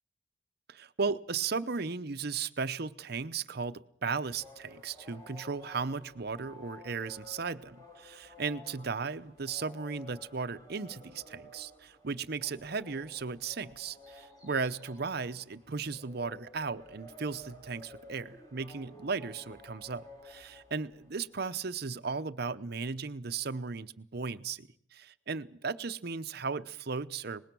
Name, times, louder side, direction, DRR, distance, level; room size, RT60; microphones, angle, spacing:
voice 1, 0.7-27.5, right 5 dB, 55° right, 0.8 m, -36 dB
sound 1, 4.3-21.3, left 2 dB, 20° left, 4.0 m, -53 dB
24.5 x 20.0 x 6.1 m
head